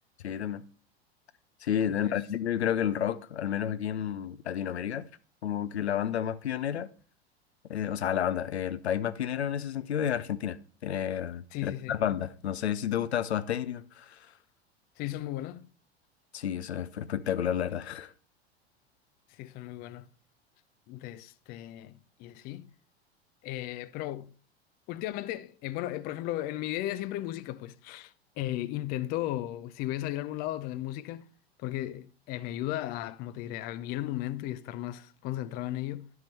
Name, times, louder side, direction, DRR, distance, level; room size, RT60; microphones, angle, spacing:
voice 1, 0.2-0.6 1.6-5.0 5.4-6.9 7.7-14.2 16.3-18.1, left 9 dB, 80° left, 0.5 m, -31 dB
voice 2, 1.9-2.2 11.5-12.0 15.0-15.7 19.3-20.1 20.9-22.7 23.4-24.3 24.9-31.3 31.6-36.1, left 14 dB, 30° left, 0.4 m, -35 dB
11.5 x 4.6 x 3.2 m
figure-of-eight pair, 85°, 32 cm